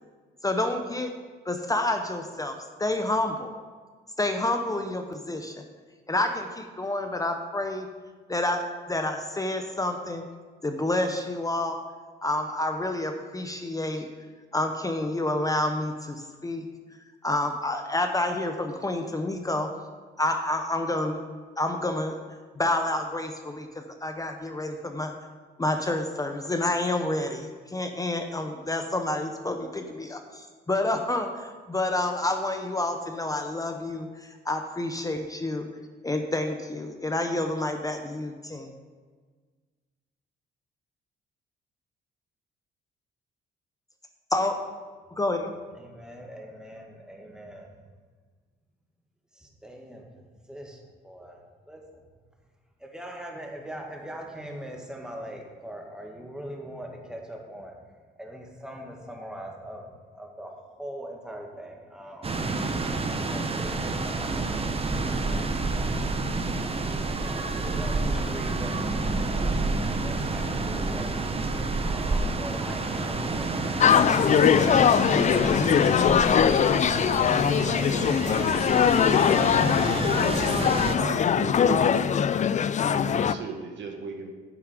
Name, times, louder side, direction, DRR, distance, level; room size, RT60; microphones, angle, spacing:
voice 1, 0.4-1.1 1.4-3.5 4.2-5.6 6.1-7.9 8.3-8.6 8.9-10.2 10.6-11.8 12.2-14.1 14.5-16.6 17.2-19.7 20.2-21.2 21.6-22.1 22.6-25.1 25.6-35.7 36.0-38.7 44.3-44.5 45.1-45.5, left 2 dB, 15° left, 5 dB, 0.8 m, -29 dB
voice 2, 45.7-47.8 49.3-52.0 52.8-57.8 58.2-66.0 66.6-79.4, equal, 5° right, 0 dB, 1.9 m, -42 dB
sound 1, 62.2-80.9, right 3 dB, 30° right, 0.9 m, -29 dB
sound 2, 73.8-83.3, left 8 dB, 35° left, 0.4 m, -21 dB
voice 3, 80.5-82.1 82.9-84.3, right 5 dB, 65° right, 3 dB, 1.6 m, -35 dB
9.8 x 7.2 x 5.1 m, 1.5 s
cardioid pair, 90°, 20 cm